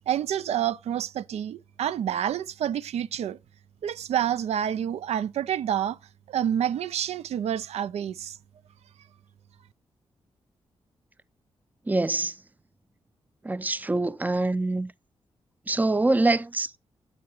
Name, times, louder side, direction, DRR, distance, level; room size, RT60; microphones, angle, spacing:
voice 1, 0.1-3.4 3.8-6.0 6.3-8.4, right 10 dB, 80° right, 0.4 m, -28 dB
voice 2, 11.9-12.3 13.4-14.9 15.7-16.8, right 2 dB, 15° right, 0.4 m, -25 dB
9.4 x 8.5 x 3.1 m
cardioid pair, 70°, 11 cm